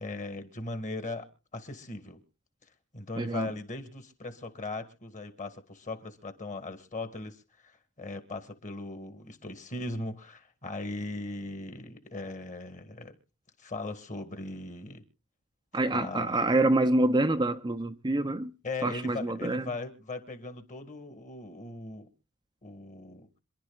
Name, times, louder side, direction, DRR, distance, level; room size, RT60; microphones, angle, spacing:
voice 1, 0.0-2.2 2.9-13.2 13.6-15.0 15.9-16.4 18.6-22.1 22.6-23.3, left 2 dB, 35° left, 1.9 m, -39 dB
voice 2, 3.2-3.5 15.7-18.5 18.8-19.7, right 2 dB, 20° right, 0.6 m, -26 dB
27.0 x 11.0 x 2.4 m
head